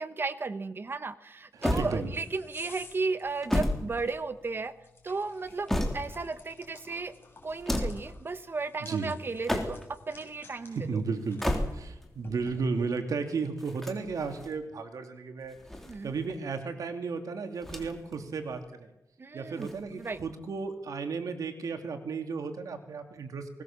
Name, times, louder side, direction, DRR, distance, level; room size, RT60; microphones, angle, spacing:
voice 1, 0.0-4.7 5.0-7.1 7.4-10.9 15.9-16.1 19.2-20.2, right 3 dB, 40° right, 13 dB, 1.1 m, -35 dB
voice 2, 1.5-2.1 8.8-9.1 10.6-11.4 11.7-15.6 16.0-18.9 19.3-23.5, right 4 dB, 80° right, 6 dB, 2.7 m, -34 dB
sound 1, 1.6-13.1, left 3 dB, 40° left, 7.0 m, -54 dB
sound 2, 1.6-2.4 3.2-4.6 5.3-6.3 7.5-8.1 9.3-10.0 11.2-12.1 13.6-14.5 15.4-16.4 17.6-18.2 18.5-18.6 19.6-20.3, left 1 dB, 5° left, 3.5 m, -33 dB
20.0 x 19.5 x 7.4 m, 0.90 s
wide cardioid pair, 120°, 6 cm